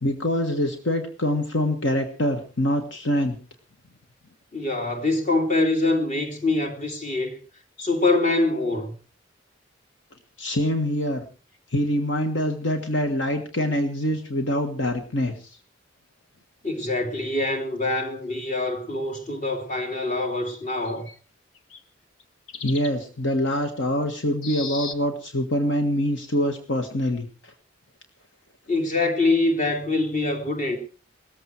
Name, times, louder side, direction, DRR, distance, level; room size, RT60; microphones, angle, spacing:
voice 1, 0.0-3.4 10.4-11.2 11.7-15.6 22.6-27.5, equal, 70° left, 1.6 m, -25 dB
voice 2, 4.5-7.4 7.8-8.9 16.6-21.1 28.7-30.8, left 2 dB, 40° left, 3.2 m, -24 dB
sound 1, 20.0-20.1 20.8-21.1 21.5-21.8 22.2-22.3 22.5-22.9 24.4-24.9, left 5 dB, 90° left, 1.4 m, -36 dB
18.0 x 14.5 x 4.6 m
head